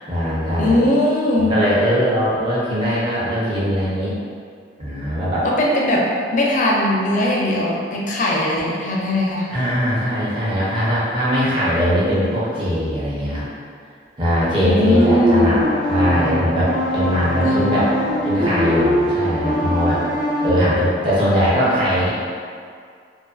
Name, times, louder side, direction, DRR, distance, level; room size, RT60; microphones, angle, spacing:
voice 1, 0.0-0.8 1.4-4.2 4.8-5.5 9.5-13.5 14.2-15.6 15.9-17.9 18.2-20.0 20.4-22.1, equal, 30° right, -9 dB, 0.6 m, -20 dB
voice 2, 0.6-1.6 5.4-9.5 14.6-15.6 17.4-17.6, left 1 dB, 45° left, -3 dB, 0.4 m, -19 dB
sound 1, 14.9-20.5, equal, 50° right, 1.0 m, -21 dB
2.4 x 2.4 x 2.3 m, 2.1 s
head